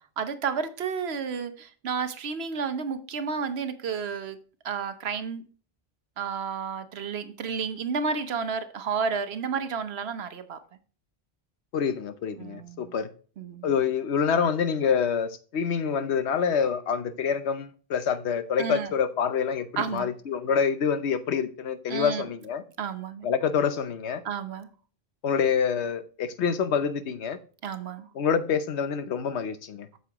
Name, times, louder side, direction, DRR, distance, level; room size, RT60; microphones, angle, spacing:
voice 1, 0.2-4.4 4.6-5.4 6.2-10.6 12.4-12.9 13.4-13.7 18.6-18.9 19.8-20.1 21.9-22.3 22.8-23.3 24.2-24.7 27.6-28.1, right 6 dB, 70° right, 10 dB, 1.1 m, -31 dB
voice 2, 11.7-13.1 13.6-22.6 23.2-24.2 25.2-27.4 28.1-29.9, left 6 dB, 85° left, 11 dB, 1.0 m, -26 dB
8.3 x 6.9 x 2.9 m, 0.39 s
omnidirectional pair, 1.1 m